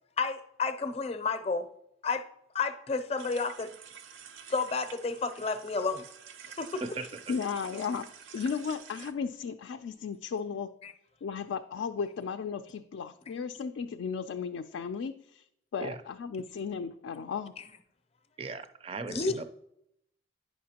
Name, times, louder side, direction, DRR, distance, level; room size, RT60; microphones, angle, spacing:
voice 1, 0.2-1.7 2.0-2.3 2.5-3.7 4.5-6.1 6.6-6.8 10.8-10.9 17.6-17.7 19.1-19.4, left 4 dB, 30° left, 9 dB, 0.5 m, -31 dB
sound 1, 3.2-9.1, right 8 dB, 85° right, 0.5 m, -49 dB
voice 2, 6.7-7.3 15.8-16.0 18.4-19.4, right 3 dB, 30° right, 10 dB, 0.4 m, -38 dB
voice 3, 7.3-8.1 8.3-10.7 11.2-15.4 15.7-17.5, left 6 dB, 80° left, 6 dB, 0.3 m, -35 dB
9.3 x 5.7 x 2.8 m, 0.77 s
head